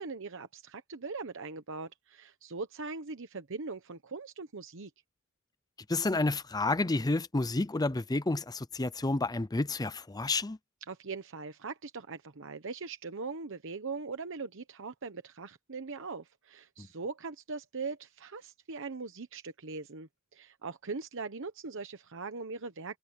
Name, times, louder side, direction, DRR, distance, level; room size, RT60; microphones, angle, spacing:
voice 1, 0.0-4.9 10.9-23.0, right 4 dB, 65° right, 1.0 m, -41 dB
voice 2, 5.9-10.6 16.8-16.9, left 2 dB, 20° left, 0.6 m, -30 dB
head